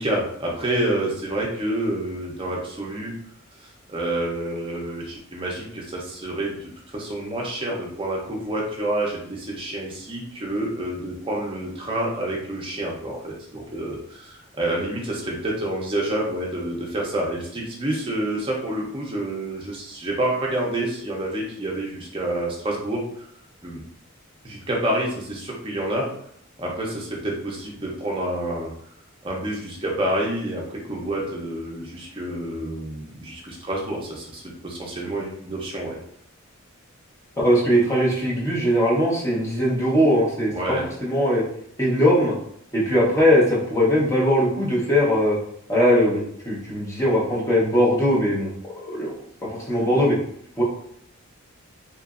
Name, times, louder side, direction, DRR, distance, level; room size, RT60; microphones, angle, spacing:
voice 1, 0.0-3.1 3.6-23.3 23.6-23.8 24.4-26.1 26.6-28.7 29.2-36.0 40.5-40.8, right 1 dB, 25° right, -2 dB, 0.5 m, -28 dB
voice 2, 37.4-40.8 41.0-41.4 41.8-42.3 42.7-45.4 45.7-49.1 49.4-50.2 50.6-50.7, equal, 15° left, -6 dB, 0.7 m, -20 dB
2.8 x 2.5 x 2.4 m, 0.69 s
head